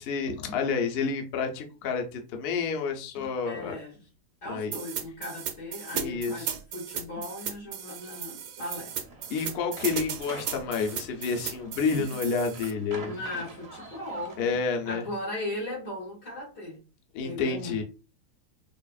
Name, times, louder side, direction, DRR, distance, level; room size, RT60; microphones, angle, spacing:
voice 1, 0.0-3.8 4.4-4.8 5.9-6.5 9.3-13.2 14.4-15.0 17.1-17.8, left 5 dB, 55° left, 0.7 m, -29 dB
voice 2, 3.4-4.0 4.4-8.9 13.0-14.5 14.8-16.8 17.2-17.8, left 1 dB, 90° left, 2.7 m, -37 dB
sound 1, 4.7-12.7, right 8 dB, 75° right, 1.1 m, -36 dB
sound 2, 8.8-14.4, right 2 dB, 40° right, 0.5 m, -47 dB
4.8 x 2.4 x 2.3 m
omnidirectional pair, 1.8 m